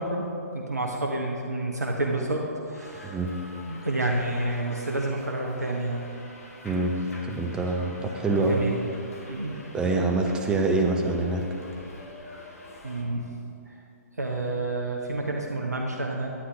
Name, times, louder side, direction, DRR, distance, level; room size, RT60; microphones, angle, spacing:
voice 1, 0.0-3.2 3.7-6.0 8.3-8.7 9.3-9.6 12.8-13.3 13.7-13.8 14.2-16.3, right 2 dB, 75° right, 0 dB, 0.9 m, -29 dB
Subway metro underground, 2.7-13.0, left 1 dB, 60° left, 1.6 m, -46 dB
voice 2, 3.0-3.3 6.6-7.0 7.3-8.6 9.7-11.5, right 2 dB, 10° right, 2 dB, 0.7 m, -25 dB
9.9 x 9.4 x 3.3 m, 2.7 s
figure-of-eight pair, 125°, 9 cm